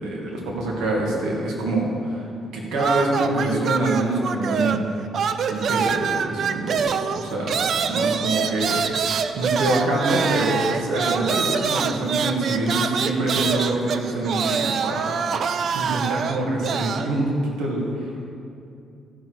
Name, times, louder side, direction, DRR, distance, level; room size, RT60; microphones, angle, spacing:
voice 1, 0.0-4.9 5.5-9.1 9.4-15.3 15.7-18.3, right 2 dB, 85° right, -3 dB, 2.2 m, -25 dB
sound 1, 2.8-4.9 5.1-17.1, right 6 dB, 60° right, 0.5 m, -25 dB
14.5 x 6.3 x 4.8 m, 2.6 s
cardioid pair, 90°, 0 cm